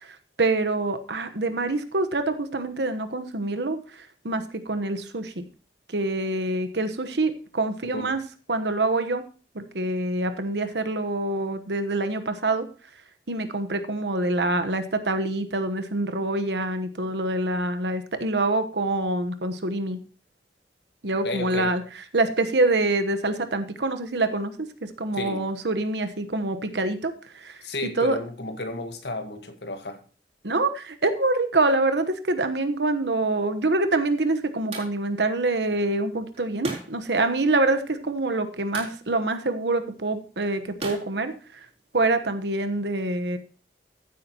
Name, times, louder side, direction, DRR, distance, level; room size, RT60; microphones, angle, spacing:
voice 1, 0.0-5.4 5.9-8.2 8.5-9.2 9.5-12.7 13.3-20.0 21.0-21.8 22.1-24.5 24.8-27.6 28.0-28.2 30.4-41.6 41.9-43.4, right 2 dB, 80° right, 9 dB, 1.2 m, -26 dB
voice 2, 21.2-21.7 25.1-25.5 27.6-30.0, left 2 dB, 75° left, 7 dB, 1.5 m, -32 dB
sound 1, 33.5-42.0, right 2 dB, 35° right, 3.8 m, -42 dB
15.0 x 8.5 x 3.0 m, 0.37 s
head